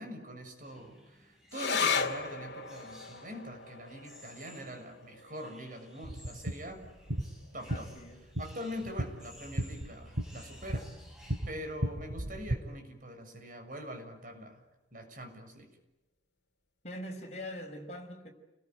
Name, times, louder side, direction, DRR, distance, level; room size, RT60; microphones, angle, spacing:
voice 1, 0.0-6.8 7.5-7.9 8.4-10.9 11.5-14.6 14.9-15.7, equal, 45° right, 6.8 m, -43 dB
sound 1, 0.6-11.6, left 1 dB, 5° right, 6.7 m, -57 dB
sound 2, 1.5-8.3 8.6-8.7 9.0-9.7 10.3-10.4, left 6 dB, 65° left, 2.5 m, -37 dB
sound 3, 6.0-12.6, right 1 dB, 85° right, 3.2 m, -37 dB
voice 2, 7.7-8.2 16.8-18.3, left 1 dB, 35° left, 5.6 m, -42 dB
30.0 x 21.5 x 9.4 m
head